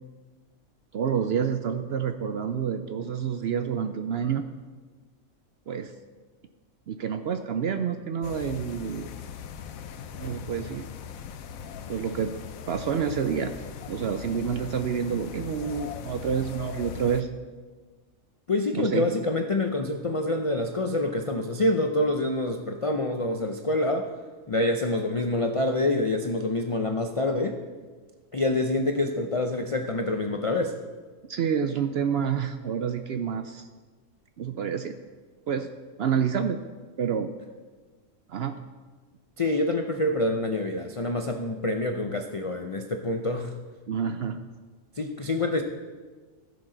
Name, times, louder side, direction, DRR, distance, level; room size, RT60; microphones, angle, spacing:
voice 1, 0.9-4.5 5.7-5.9 6.9-9.1 10.2-10.8 11.9-12.3 12.7-13.5 13.9-17.3 18.7-19.1 31.3-33.7 34.4-34.9 35.5-35.7 36.0-36.6 37.0-37.3 38.3-38.6 43.9-44.4, right 7 dB, 65° right, 8 dB, 0.6 m, -28 dB
sound 1, 8.2-17.2, left 8 dB, 80° left, 1.1 m, -40 dB
voice 2, 18.5-24.1 24.5-27.6 28.3-30.8 39.4-43.5 45.0-45.6, left 2 dB, 60° left, 5 dB, 0.3 m, -26 dB
16.0 x 6.8 x 3.9 m, 1.4 s
omnidirectional pair, 1.4 m